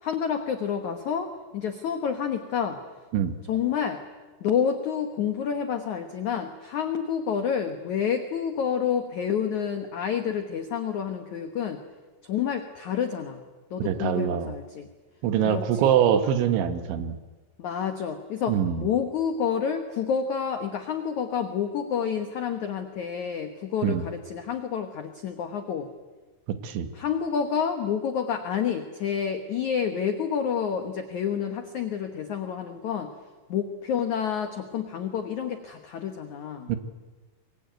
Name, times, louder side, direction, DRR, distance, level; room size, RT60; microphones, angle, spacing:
voice 1, 0.0-2.8 3.5-4.0 4.4-11.8 12.2-13.4 13.7-14.9 15.4-15.9 17.6-25.9 26.9-33.1 33.5-36.7, left 7 dB, 75° left, 6 dB, 1.7 m, -29 dB
voice 2, 13.8-14.5 15.2-17.2 18.5-18.9 23.8-24.1 26.6-26.9 36.7-36.8, right 9 dB, 75° right, 9 dB, 3.6 m, -24 dB
24.5 x 23.5 x 9.2 m, 1.3 s
omnidirectional pair, 5.5 m